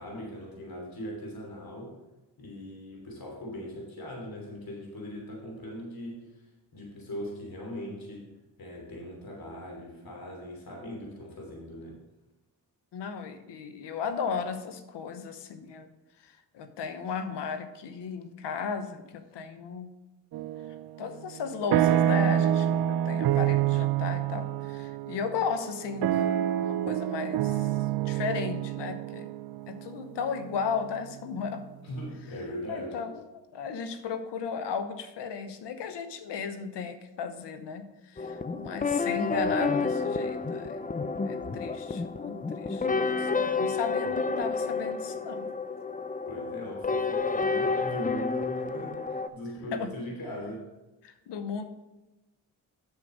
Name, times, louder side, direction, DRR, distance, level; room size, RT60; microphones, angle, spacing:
voice 1, 0.0-1.9 2.4-6.5 6.7-8.3 8.6-12.0 31.8-33.0 46.3-50.6, equal, 60° left, -1 dB, 3.1 m, -40 dB
voice 2, 12.9-15.9 16.2-19.9 21.0-27.7 28.0-29.3 29.7-31.7 32.7-33.2 33.5-40.9 41.2-45.5 49.7-49.9 51.0-51.6, left 6 dB, 80° left, 9 dB, 1.0 m, -35 dB
sound 1, 20.3-20.9 21.3-31.3, right 11 dB, 65° right, 0.5 m, -27 dB
sound 2, 38.2-49.3, left 4 dB, 20° left, 0.6 m, -30 dB
8.0 x 6.6 x 5.4 m, 1.0 s
supercardioid pair, 50°, 41 cm